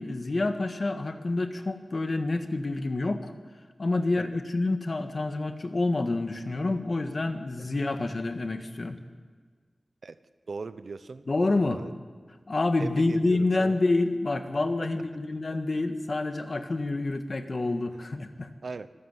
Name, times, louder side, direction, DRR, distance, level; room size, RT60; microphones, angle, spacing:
voice 1, 0.0-3.3 3.8-9.0 11.3-11.8 12.5-18.5, left 2 dB, 50° left, 7 dB, 1.7 m, -28 dB
voice 2, 10.5-11.3 11.5-11.9 12.8-13.8 15.5-15.6 18.6-18.9, right 4 dB, 75° right, 13 dB, 0.8 m, -39 dB
25.0 x 15.0 x 8.1 m, 1.5 s
wide cardioid pair, 100°, 0 cm